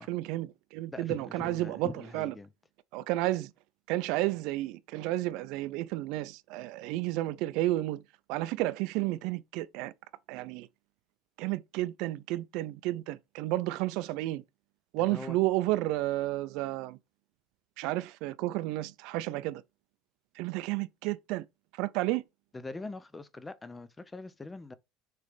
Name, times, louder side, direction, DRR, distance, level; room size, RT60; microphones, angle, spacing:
voice 1, 0.0-2.3 2.9-3.5 3.9-8.0 8.3-9.9 10.3-10.7 11.4-14.4 14.9-17.0 17.8-19.6 20.4-21.4 21.8-22.2, right 17 dB, 65° right, 0.5 m, -32 dB
voice 2, 0.9-2.5 15.0-15.4 22.5-24.7, left 3 dB, 10° left, 0.6 m, -43 dB
6.6 x 3.2 x 5.0 m
cardioid pair, 150°, 0 cm